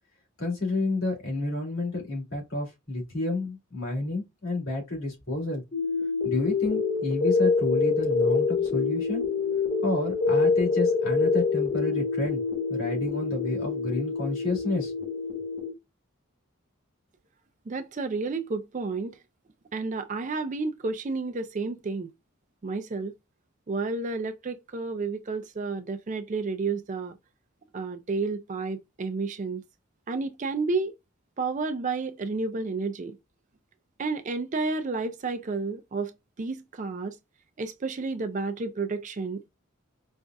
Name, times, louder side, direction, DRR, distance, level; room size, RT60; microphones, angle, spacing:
voice 1, 0.4-5.6 6.2-9.2 9.8-12.4 12.7-14.9, left 2 dB, 75° left, 2.4 m, -30 dB
sound 1, 5.7-15.7, left 4 dB, 35° left, 1.1 m, -26 dB
voice 2, 17.7-19.2 19.7-22.1 22.6-23.1 23.7-27.1 27.7-29.6 30.1-30.9 31.4-33.2 34.0-36.1 36.4-37.1 37.6-39.5, right 3 dB, 35° right, 0.4 m, -31 dB
5.2 x 2.4 x 2.2 m
head